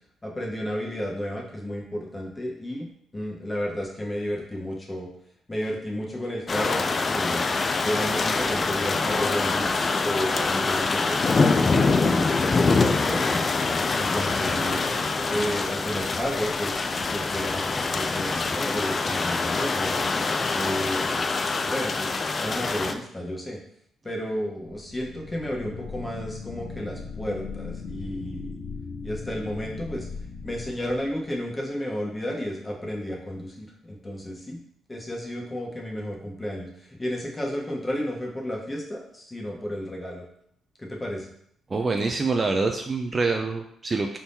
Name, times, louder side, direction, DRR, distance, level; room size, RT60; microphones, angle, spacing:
voice 1, 0.2-2.9 3.1-5.1 5.5-7.4 7.8-13.4 14.0-14.8 15.3-16.8 17.1-20.1 20.5-21.3 21.6-22.1 22.4-23.6 24.0-28.5 29.0-30.1 30.4-34.6 34.9-40.3 40.8-41.3, equal, 15° left, -2 dB, 1.1 m, -32 dB
sound 1, 6.5-22.9, left 3 dB, 35° left, 0.4 m, -25 dB
sound 2, 24.6-31.6, left 4 dB, 80° left, 0.8 m, -38 dB
voice 2, 41.7-44.2, right 3 dB, 30° right, 4 dB, 0.4 m, -25 dB
4.4 x 3.6 x 2.7 m, 0.70 s
cardioid pair, 90°, 0 cm